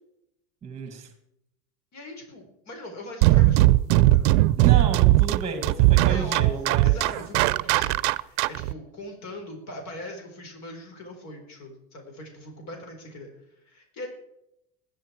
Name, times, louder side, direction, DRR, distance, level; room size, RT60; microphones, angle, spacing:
voice 1, 0.6-1.1 4.6-7.0, right 5 dB, 15° right, 7 dB, 1.9 m, -32 dB
voice 2, 1.9-3.7 4.1-4.3 6.1-13.3 13.7-14.1, left 1 dB, 40° left, 3 dB, 4.5 m, -41 dB
sound 1, 3.2-8.7, right 17 dB, 75° right, 0.7 m, -19 dB
21.0 x 10.0 x 4.6 m, 0.81 s
cardioid pair, 140°, 40 cm